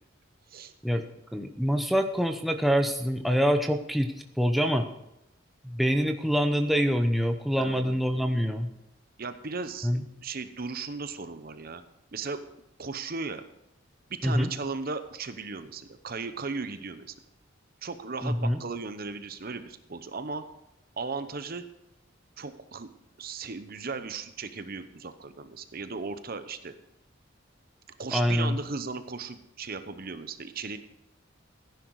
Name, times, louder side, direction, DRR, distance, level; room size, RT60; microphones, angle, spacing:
voice 1, 1.3-4.9 5.6-8.7 9.8-10.0 14.2-14.5 18.2-18.6 28.1-28.6, equal, ahead, 4 dB, 0.7 m, -25 dB
voice 2, 7.6-8.0 9.2-9.9 10.2-11.8 12.1-12.4 12.8-13.4 14.1-17.2 17.8-20.4 21.0-21.7 22.4-22.9 23.2-26.8 28.0-30.8, right 4 dB, 50° right, 10 dB, 0.8 m, -36 dB
15.5 x 10.5 x 4.8 m, 0.84 s
head